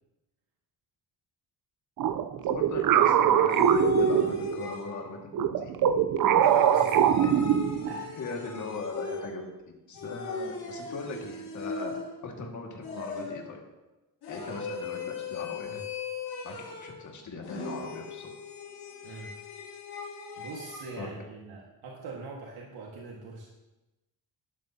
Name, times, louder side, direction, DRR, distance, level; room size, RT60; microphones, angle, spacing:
sound 1, 2.0-4.7 5.3-8.0, right 9 dB, 60° right, 0.6 m, -23 dB
voice 1, 2.5-5.8 6.3-6.5 8.2-11.9 12.2-13.6 14.3-15.8 16.4-18.3 21.0-21.1, left 4 dB, 50° left, 1 dB, 1.9 m, -39 dB
sound 2, 3.5-5.2 6.4-9.5 10.0-12.3 12.8-13.5 14.2-17.0 17.4-21.0, left 3 dB, 90° left, 4.3 m, -37 dB
voice 2, 6.3-7.2 7.8-8.2 15.7-15.8 19.0-19.3 20.4-23.5, right 3 dB, 80° right, -2 dB, 1.8 m, -43 dB
12.0 x 11.5 x 2.8 m, 1.0 s
cardioid pair, 140°, 37 cm